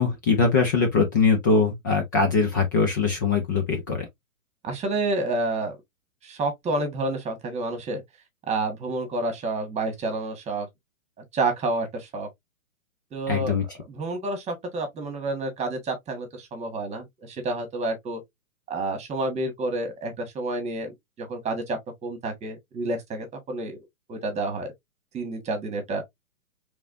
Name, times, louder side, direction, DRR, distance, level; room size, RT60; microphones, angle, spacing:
voice 1, 0.0-4.1 13.3-13.6, left 4 dB, 15° left, 0.4 m, -22 dB
voice 2, 4.6-5.8 6.2-8.0 8.5-10.7 11.3-12.3 13.1-13.6 13.9-18.2 18.7-23.8 24.1-24.7 25.1-26.0, right 2 dB, 15° right, 1.5 m, -29 dB
4.8 x 3.6 x 2.5 m
figure-of-eight pair, 120°, 42 cm